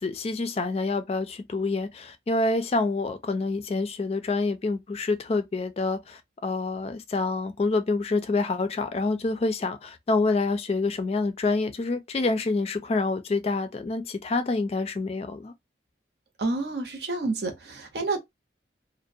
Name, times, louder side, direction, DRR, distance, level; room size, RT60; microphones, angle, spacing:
voice 1, 0.0-15.5, left 3 dB, 35° left, 0.3 m, -27 dB
voice 2, 16.4-18.2, right 3 dB, 65° right, 0.7 m, -29 dB
2.4 x 2.1 x 2.6 m
head